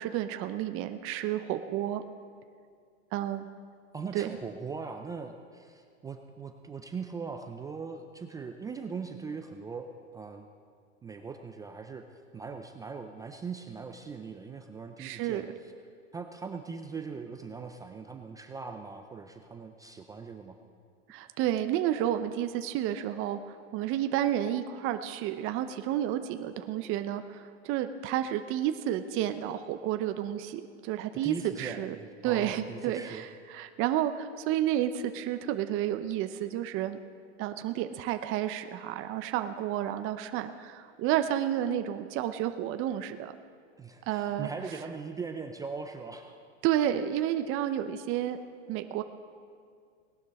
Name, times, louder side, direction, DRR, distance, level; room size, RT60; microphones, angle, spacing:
voice 1, 0.0-2.0 3.1-3.5 4.1-4.3 15.0-15.5 21.1-32.0 32.2-37.0 37.4-43.3 44.1-44.5 46.6-48.4 48.7-49.0, right 11 dB, 35° right, 8 dB, 0.7 m, -31 dB
voice 2, 3.9-9.9 10.1-10.5 11.0-12.0 12.3-15.7 16.1-20.6 31.2-33.2 43.8-46.4, right 5 dB, 10° right, 5 dB, 0.3 m, -40 dB
18.5 x 12.0 x 4.2 m, 2.1 s
supercardioid pair, 130°, 36 cm